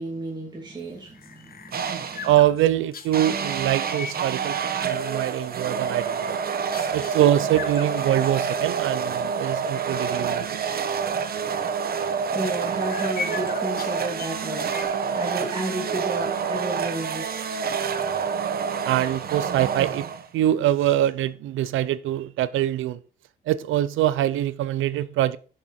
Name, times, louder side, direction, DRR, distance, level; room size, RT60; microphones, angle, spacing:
voice 1, 0.0-2.3 12.3-17.6, right 2 dB, 20° right, 2.6 m, -33 dB
sound 1, 0.9-3.3 3.8-4.2 4.7-5.3 5.6-6.3 6.7-7.2 7.5-9.0 9.3-9.4 9.8-10.1 10.6-10.7 12.1-14.8, left 5 dB, 50° left, 1.2 m, -39 dB
sound 2, 1.7-2.4 3.1-20.5, right 6 dB, 50° right, 1.1 m, -28 dB
voice 2, 2.2-6.4 6.9-10.6 18.9-20.1 20.3-23.0 23.5-25.4, right 12 dB, 85° right, 0.6 m, -24 dB
10.5 x 6.6 x 4.3 m
cardioid pair, 90°, 20 cm